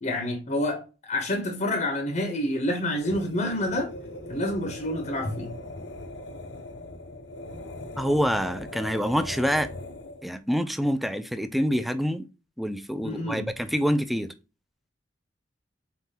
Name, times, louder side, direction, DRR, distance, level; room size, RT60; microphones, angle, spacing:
voice 1, 0.0-3.9 4.3-5.5 13.0-13.5, left 1 dB, 40° left, 0.7 m, -28 dB
sound 1, 2.9-10.3, left 1 dB, 90° left, 0.7 m, -40 dB
voice 2, 8.0-9.7 10.2-12.2 12.6-14.3, equal, ahead, 0.3 m, -26 dB
4.1 x 3.7 x 2.7 m
head